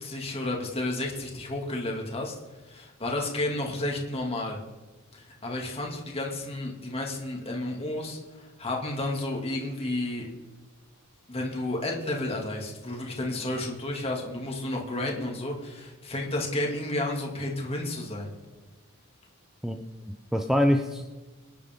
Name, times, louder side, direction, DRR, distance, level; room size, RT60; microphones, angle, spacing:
voice 1, 0.0-2.3 2.7-4.6 5.1-10.3 11.3-18.3, left 1 dB, 25° left, -1 dB, 2.5 m, -32 dB
voice 2, 19.6-21.1, equal, ahead, 4 dB, 0.6 m, -26 dB
25.0 x 10.5 x 3.7 m, 1.2 s
head